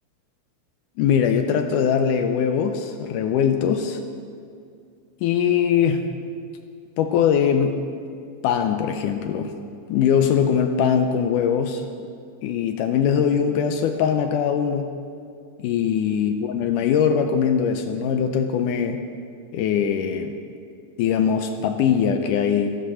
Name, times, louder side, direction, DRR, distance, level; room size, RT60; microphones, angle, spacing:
voice 1, 1.0-4.0 5.2-6.0 7.0-7.8 8.4-9.5 9.9-11.8 12.4-14.9 15.6-19.0 19.5-20.3 21.0-22.8, left 7 dB, 80° left, 6 dB, 2.2 m, -21 dB
13.0 x 12.5 x 6.3 m, 2.3 s
omnidirectional pair, 3.8 m